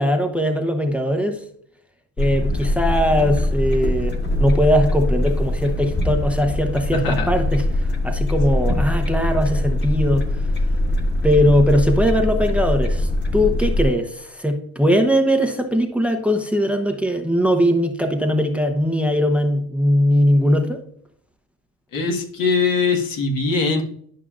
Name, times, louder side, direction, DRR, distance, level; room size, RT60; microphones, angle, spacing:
voice 1, 0.0-1.4 2.2-10.4 11.2-20.8, equal, 5° right, 0.8 m, -20 dB
sound 1, 2.2-13.8, left 1 dB, 30° left, 1.6 m, -22 dB
voice 2, 6.9-7.3 21.9-23.8, left 4 dB, 65° left, 1.8 m, -21 dB
11.5 x 5.6 x 2.5 m
cardioid pair, 95°, 36 cm